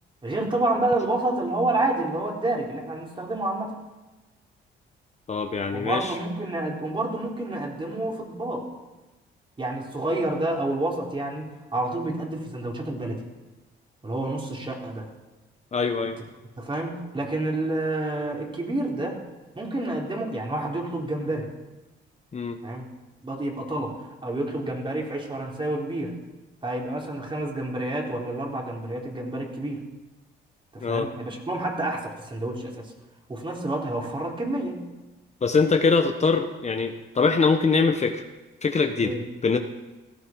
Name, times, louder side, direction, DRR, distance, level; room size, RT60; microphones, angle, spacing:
voice 1, 0.2-3.7 5.7-8.6 9.6-13.2 14.0-15.1 16.6-19.2 19.6-21.5 22.6-22.9 23.2-26.1 26.6-29.8 30.7-32.9 33.3-34.9 39.0-39.2, right 2 dB, 25° right, -1 dB, 4.2 m, -29 dB
voice 2, 5.3-6.1 15.7-16.2 22.3-22.6 30.8-31.1 35.4-38.2 38.6-39.1 39.4-39.6, left 4 dB, 35° left, 6 dB, 1.2 m, -23 dB
17.5 x 15.0 x 4.7 m, 1.1 s
cardioid pair, 90°, 20 cm